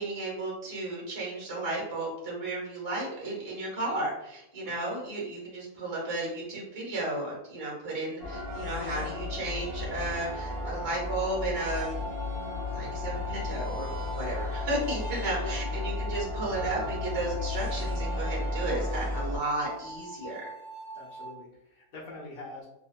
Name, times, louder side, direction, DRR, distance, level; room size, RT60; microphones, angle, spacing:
voice 1, 0.0-12.0 12.7-13.9 14.2-20.4, right 2 dB, 45° right, -4 dB, 0.4 m, -33 dB
sound 1, 8.2-19.4, left 2 dB, 25° right, 1.1 m, -34 dB
sound 2, 10.1-21.3, right 2 dB, 5° left, 0.5 m, -43 dB
voice 2, 15.4-15.9 20.9-22.7, left 3 dB, 75° left, -4 dB, 0.5 m, -45 dB
2.6 x 2.3 x 2.2 m, 0.84 s
omnidirectional pair, 1.8 m